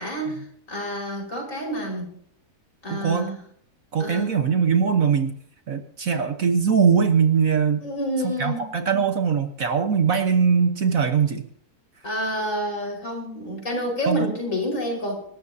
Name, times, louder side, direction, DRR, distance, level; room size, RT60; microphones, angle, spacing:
voice 1, 0.0-2.1 2.8-3.4 4.0-4.3 7.8-8.6 12.0-15.2, equal, 50° left, 1 dB, 5.4 m, -28 dB
voice 2, 2.9-3.3 3.9-5.3 5.7-7.8 8.2-11.4 14.1-14.3, right 6 dB, 60° right, 7 dB, 1.5 m, -21 dB
26.0 x 13.5 x 2.8 m, 0.63 s
omnidirectional pair, 1.7 m